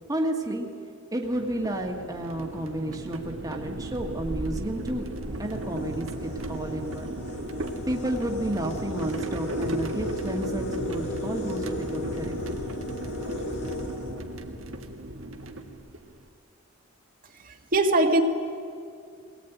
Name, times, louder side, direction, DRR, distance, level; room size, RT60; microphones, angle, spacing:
voice 1, 0.1-0.7 1.1-5.1 5.4-7.2 7.8-12.6, right 1 dB, 20° right, 1 dB, 1.6 m, -31 dB
sound 1, 1.2-16.2, right 1 dB, 75° right, 1.6 m, -35 dB
sound 2, 3.5-3.8 4.6-4.7 5.1-14.9, left 1 dB, 60° left, 3.6 m, -37 dB
voice 2, 17.4-18.2, right 2 dB, 45° right, 3 dB, 1.7 m, -22 dB
22.5 x 18.5 x 9.2 m, 2.4 s
head